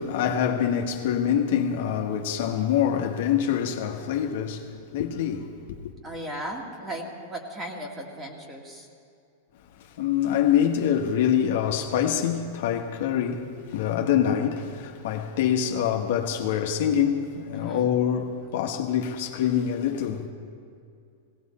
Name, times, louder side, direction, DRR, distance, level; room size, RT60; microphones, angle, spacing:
voice 1, 0.0-5.9 9.8-20.3, left 9 dB, 65° left, 1.3 m, -25 dB
voice 2, 6.0-8.9 17.5-17.9, right 1 dB, 20° right, 2.2 m, -36 dB
17.5 x 17.5 x 4.3 m
supercardioid pair, 140°, 0 cm